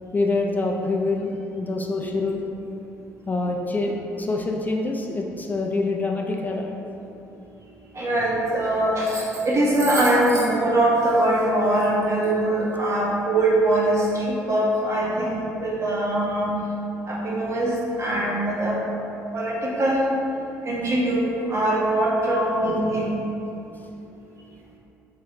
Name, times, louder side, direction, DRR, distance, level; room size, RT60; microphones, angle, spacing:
voice 1, 0.1-2.5 3.3-6.7, left 3 dB, 25° left, 1 dB, 0.3 m, -25 dB
voice 2, 7.9-16.6 17.1-18.8 19.3-20.0 20.6-23.2, right 1 dB, 45° right, -5 dB, 1.0 m, -22 dB
3.2 x 3.0 x 3.7 m, 2.9 s
supercardioid pair, 70°, 7 cm